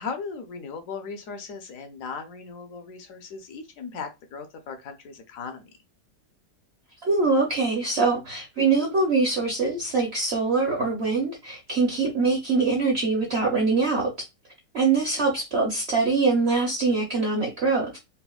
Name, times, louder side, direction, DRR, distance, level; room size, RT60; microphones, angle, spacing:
voice 1, 0.0-5.7, left 5 dB, 65° left, 0.9 m, -37 dB
voice 2, 7.0-14.1 14.7-18.0, right 4 dB, 55° right, 0.7 m, -23 dB
4.2 x 2.1 x 2.3 m
omnidirectional pair, 1.9 m